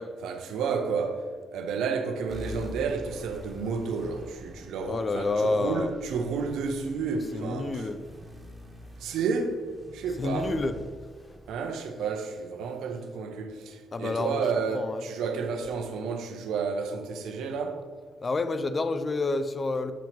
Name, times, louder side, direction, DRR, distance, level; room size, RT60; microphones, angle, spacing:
voice 1, 0.2-7.9 9.0-9.6 9.9-10.5 11.5-17.8, right 5 dB, 90° right, 0.8 m, -31 dB
sound 1, 2.3-13.1, equal, 10° right, 1.4 m, -45 dB
voice 2, 4.9-5.9 7.3-8.0 10.2-10.7 13.9-14.4 14.7-15.0 18.2-19.9, left 3 dB, 35° left, 0.5 m, -28 dB
7.1 x 3.1 x 5.9 m
cardioid pair, 95°, 0 cm